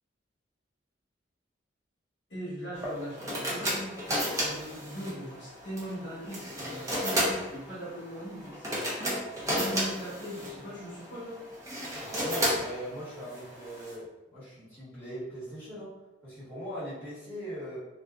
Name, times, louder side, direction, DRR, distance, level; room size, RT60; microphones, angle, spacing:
voice 1, 2.3-4.0 4.4-8.9 9.3-11.4, equal, 60° left, -9 dB, 1.1 m, -40 dB
sound 1, 2.7-13.9, equal, 15° right, 0.5 m, -33 dB
sound 2, 9.0-9.7, right 1 dB, 55° right, 0.6 m, -36 dB
voice 2, 12.0-15.9 16.2-17.8, equal, 10° left, -14 dB, 1.4 m, -40 dB
2.6 x 2.3 x 2.3 m, 1.1 s
head